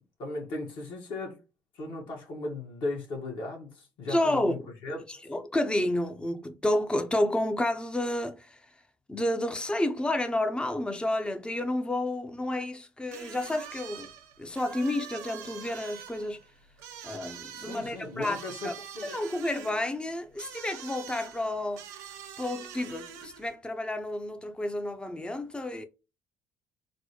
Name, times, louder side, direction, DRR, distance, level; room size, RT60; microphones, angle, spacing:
voice 1, 0.2-1.4 1.7-5.0 17.6-19.2, left 2 dB, 60° left, 1.6 m, -37 dB
voice 2, 4.1-4.7 5.1-8.6 9.1-14.1 14.4-16.4 17.0-18.7 19.0-21.8 22.4-25.8, left 1 dB, 10° left, 0.6 m, -30 dB
sound 1, 13.1-23.5, right 8 dB, 75° right, 0.6 m, -45 dB
4.0 x 2.1 x 2.9 m
hypercardioid pair, 60°, 9 cm